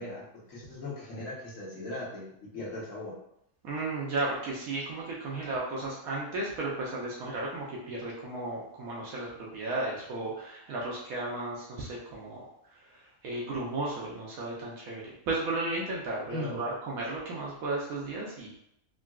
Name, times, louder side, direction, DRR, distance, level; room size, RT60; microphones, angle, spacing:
voice 1, 0.0-3.1 16.3-16.7, left 2 dB, 65° left, -6 dB, 1.3 m, -39 dB
voice 2, 3.6-12.4 12.7-18.5, right 2 dB, 85° right, -4 dB, 1.1 m, -34 dB
3.7 x 2.2 x 2.3 m, 0.75 s
omnidirectional pair, 1.5 m